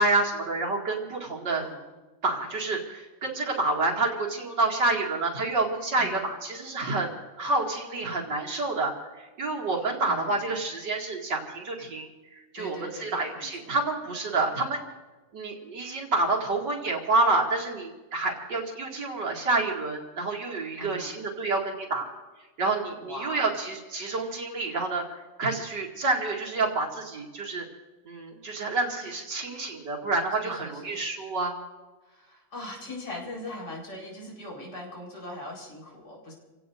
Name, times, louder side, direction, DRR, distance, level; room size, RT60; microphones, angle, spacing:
voice 1, 0.0-1.6 2.2-14.8 15.3-22.1 22.6-25.0 25.4-27.6 28.0-31.5, right 3 dB, 65° right, -2 dB, 2.9 m, -28 dB
voice 2, 1.5-1.9 6.0-6.3 10.0-10.4 12.6-13.7 14.3-14.5 20.8-21.2 23.0-23.5 30.4-31.0 32.0-36.3, left 1 dB, 60° left, -2 dB, 5.3 m, -40 dB
29.0 x 17.0 x 2.6 m, 1.2 s
omnidirectional pair, 2.1 m